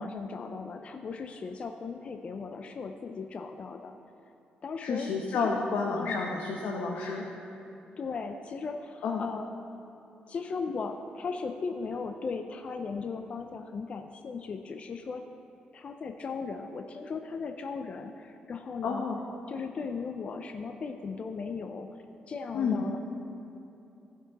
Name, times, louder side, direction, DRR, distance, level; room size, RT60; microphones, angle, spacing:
voice 1, 0.0-3.9 4.6-5.5 6.0-6.3 8.0-9.8 10.3-15.2 15.7-19.1 19.5-22.0 22.3-23.0, left 4 dB, 40° left, 6 dB, 0.4 m, -37 dB
voice 2, 4.8-7.2 9.0-9.2 18.8-19.3 22.5-22.8, left 4 dB, 85° left, -1 dB, 0.9 m, -30 dB
15.0 x 6.0 x 4.0 m, 2.9 s
cardioid pair, 145°, 3 cm